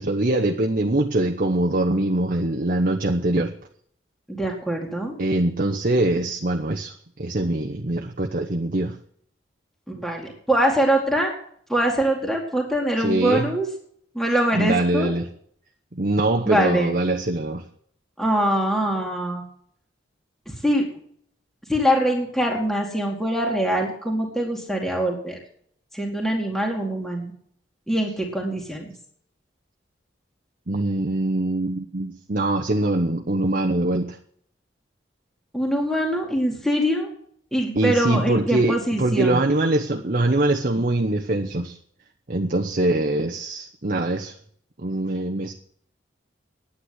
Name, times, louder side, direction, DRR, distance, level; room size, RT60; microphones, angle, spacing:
voice 1, 0.0-3.5 5.2-6.9 7.2-9.0 13.0-13.5 14.5-15.3 15.9-17.6 30.7-34.2 37.7-41.8 42.3-44.3 44.8-45.5, right 2 dB, 50° right, 3 dB, 1.0 m, -23 dB
voice 2, 4.4-5.2 9.9-11.3 11.7-13.7 14.1-15.1 16.5-17.0 18.2-19.4 20.6-20.9 21.7-25.4 25.9-27.3 27.9-28.9 35.5-37.1 37.5-39.4, equal, ahead, -1 dB, 2.5 m, -23 dB
9.9 x 9.3 x 9.7 m, 0.63 s
head